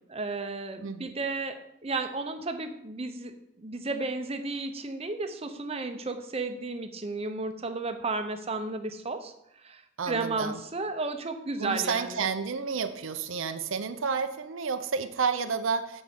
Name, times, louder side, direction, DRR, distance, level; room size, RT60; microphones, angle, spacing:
voice 1, 0.1-9.3 9.6-12.3, right 3 dB, 30° right, 7 dB, 0.8 m, -33 dB
voice 2, 0.8-1.1 10.0-10.6 11.6-16.0, right 5 dB, 70° right, 9 dB, 0.6 m, -30 dB
8.2 x 4.9 x 7.0 m, 0.81 s
head